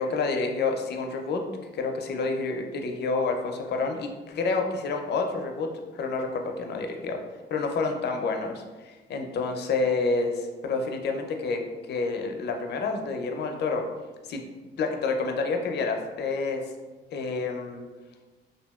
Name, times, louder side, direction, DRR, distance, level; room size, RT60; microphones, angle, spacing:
voice 1, 0.0-1.4 1.7-7.2 7.5-11.6 11.9-13.8 14.3-14.4 14.8-16.6 17.1-17.8, left 4 dB, 60° left, 4 dB, 0.4 m, -28 dB
2.7 x 2.6 x 2.2 m, 1.3 s
cardioid pair, 90°, 20 cm